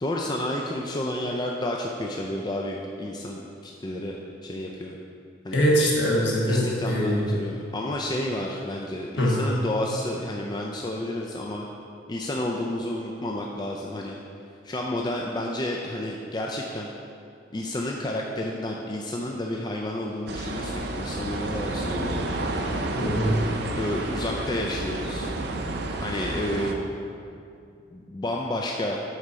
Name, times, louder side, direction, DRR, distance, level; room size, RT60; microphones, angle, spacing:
voice 1, 0.0-5.0 5.4-5.6 6.5-11.7 12.1-14.2 14.6-16.9 17.5-22.3 23.8-25.3 26.0-26.8 27.9-29.0, left 1 dB, 20° left, -1 dB, 0.4 m, -30 dB
voice 2, 5.5-7.2 9.2-9.3 23.0-23.4, equal, 65° left, -4 dB, 1.5 m, -22 dB
sound 1, 20.3-26.8, right 2 dB, 60° right, 0.6 m, -30 dB
8.1 x 4.2 x 5.1 m, 2.5 s
head